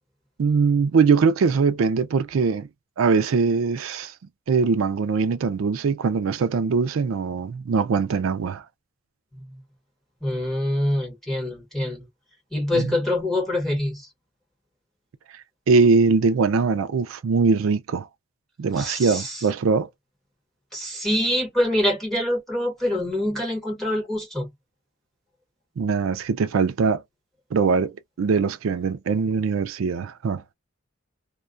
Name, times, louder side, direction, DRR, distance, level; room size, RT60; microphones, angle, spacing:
voice 1, 0.4-2.7 3.0-4.1 4.5-8.6 12.7-12.9 15.7-18.1 18.6-19.9 25.8-27.0 27.5-30.5, right 5 dB, 85° right, 0.4 m, -22 dB
voice 2, 10.2-12.1 12.5-14.1 18.8-19.4 20.7-24.5, left 1 dB, ahead, 1.2 m, -25 dB
2.2 x 2.2 x 2.4 m
head